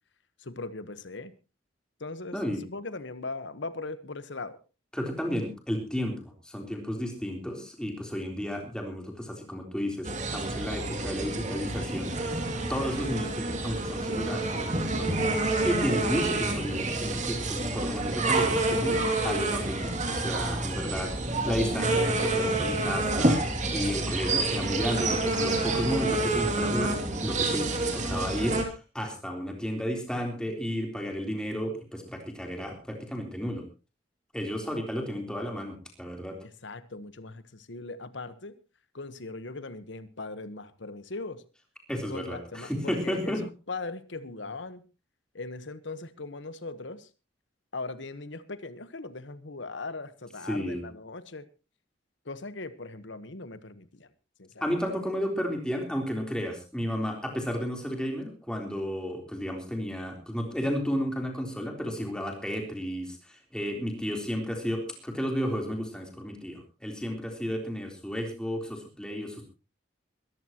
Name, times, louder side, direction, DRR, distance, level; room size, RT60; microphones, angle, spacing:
voice 1, 0.4-1.3 2.0-4.6 36.6-38.5 38.9-41.4 42.1-44.8 45.3-47.1 47.7-51.4 52.2-54.1 54.4-54.7, left 3 dB, 70° left, 13 dB, 1.2 m, -39 dB
voice 2, 4.9-6.2 6.4-12.2 12.7-15.2 15.6-28.6 28.9-33.6 34.3-36.4 41.9-43.4 50.5-50.8 54.6-69.4, equal, 5° left, 2 dB, 3.5 m, -32 dB
sound 1, 10.0-28.7, right 2 dB, 40° right, 2.5 m, -28 dB
22.0 x 14.0 x 2.9 m, 0.31 s
head